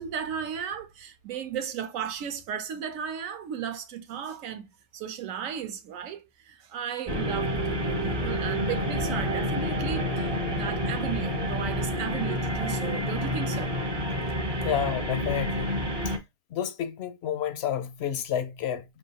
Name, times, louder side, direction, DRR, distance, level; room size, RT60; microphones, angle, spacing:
voice 1, 0.0-13.7 14.6-14.7, right 8 dB, 70° right, 1.1 m, -35 dB
sound 1, 7.1-16.2, equal, 30° right, 0.5 m, -29 dB
voice 2, 14.6-15.7 16.1-16.2 16.5-18.8, left 9 dB, 65° left, 0.7 m, -30 dB
5.5 x 3.4 x 2.8 m
omnidirectional pair, 1.5 m